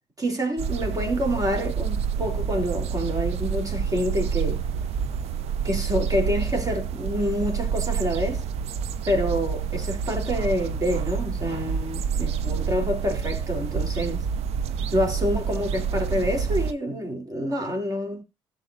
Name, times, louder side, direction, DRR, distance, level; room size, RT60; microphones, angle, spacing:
voice 1, 0.2-4.6 5.6-8.4 9.1-14.2 14.9-18.2, equal, 30° right, 3.4 m, -27 dB
sound 1, 0.6-16.7, right 7 dB, 65° right, 0.8 m, -28 dB
16.5 x 6.8 x 2.6 m
hypercardioid pair, 60°, 11 cm